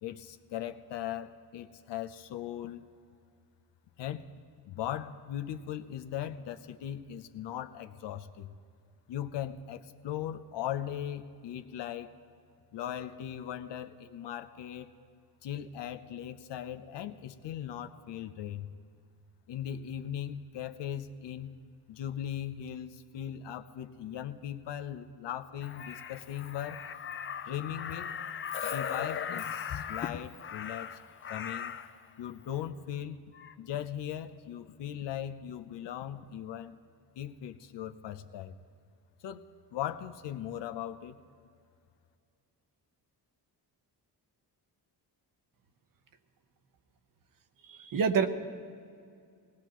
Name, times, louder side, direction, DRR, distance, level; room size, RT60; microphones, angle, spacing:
voice 1, 0.0-2.8 4.0-4.3 4.6-8.5 9.1-12.1 12.7-14.9 15.4-18.7 19.5-21.5 21.9-26.9 27.4-28.1 28.6-31.0 31.3-31.8 32.2-33.2 33.6-36.8 37.2-38.6 39.2-39.4 39.7-41.2, left 10 dB, 85° left, 8 dB, 0.8 m, -39 dB
Crow, 25.6-31.9 33.3-33.5, left 8 dB, 30° left, 0.4 m, -38 dB
voice 2, 47.6-48.3, right 6 dB, 55° right, 8 dB, 0.9 m, -27 dB
20.0 x 18.5 x 3.1 m, 2.4 s
cardioid pair, 135°, 41 cm